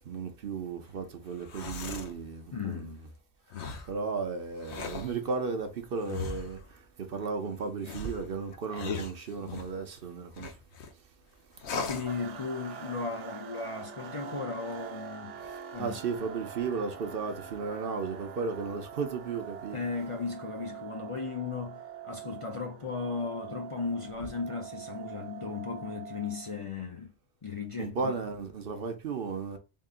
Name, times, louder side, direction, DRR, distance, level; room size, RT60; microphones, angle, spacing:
voice 1, 0.1-3.0 3.9-6.6 7.0-10.5 15.8-19.8 27.8-29.6, right 5 dB, 60° right, 0.8 m, -34 dB
sound 1, 1.3-2.2 3.5-3.9 4.6-5.1 6.1-6.6 7.8-9.8 10.4-10.9 11.6-12.1, left 5 dB, 75° left, 1.0 m, -38 dB
voice 2, 2.5-3.0 11.8-15.4 15.7-16.0 19.7-27.1 27.4-28.2, left 4 dB, 40° left, 0.5 m, -36 dB
sound 2, 12.1-26.6, right 7 dB, 90° right, 1.0 m, -44 dB
3.7 x 2.5 x 3.7 m
omnidirectional pair, 1.2 m